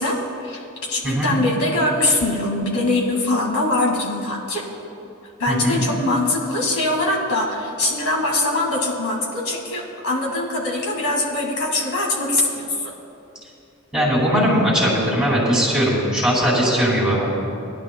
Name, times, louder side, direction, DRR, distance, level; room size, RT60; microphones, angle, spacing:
voice 1, 0.0-4.6 5.4-12.9, left 2 dB, 70° left, -2 dB, 2.0 m, -22 dB
voice 2, 5.5-5.8 13.9-17.3, equal, 5° right, -4 dB, 2.6 m, -19 dB
20.5 x 11.0 x 2.2 m, 2.6 s
head